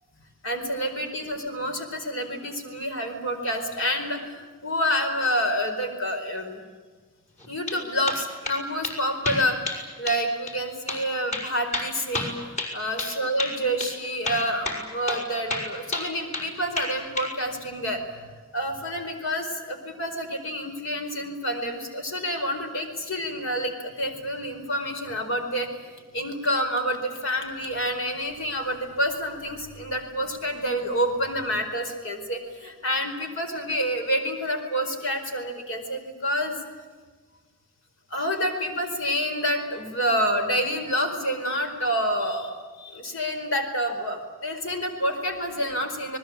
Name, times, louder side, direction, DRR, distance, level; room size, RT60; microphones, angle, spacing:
voice 1, 0.4-6.6 7.5-25.7 26.1-36.6 38.1-46.2, equal, 60° left, 5 dB, 4.6 m, -28 dB
sound 1, 7.4-7.8 8.1-8.6 8.8-9.0 9.2-9.8 10.1-10.2 10.5-10.6 10.9-11.0 11.3-13.1 13.4-13.5 13.8-13.9 14.2-15.2 15.5-16.5 16.8-17.3, left 2 dB, 35° left, 6.0 m, -30 dB
29.5 x 20.5 x 8.6 m, 1.4 s
head